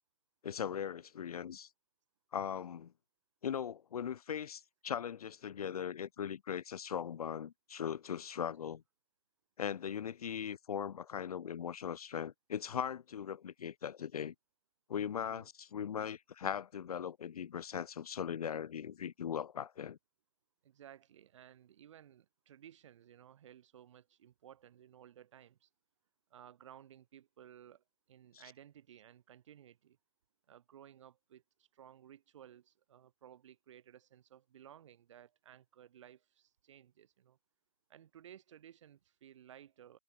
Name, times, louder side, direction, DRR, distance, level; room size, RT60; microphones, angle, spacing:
voice 1, 0.4-1.7 2.3-2.9 3.4-8.8 9.6-14.3 14.9-20.0 28.3-28.4, left 8 dB, 75° left, 0.4 m, -39 dB
voice 2, 20.6-25.7 26.3-30.0 30.5-37.4 37.9-40.0, right 10 dB, 55° right, 4.3 m, -57 dB
figure-of-eight pair, 130°, 19 cm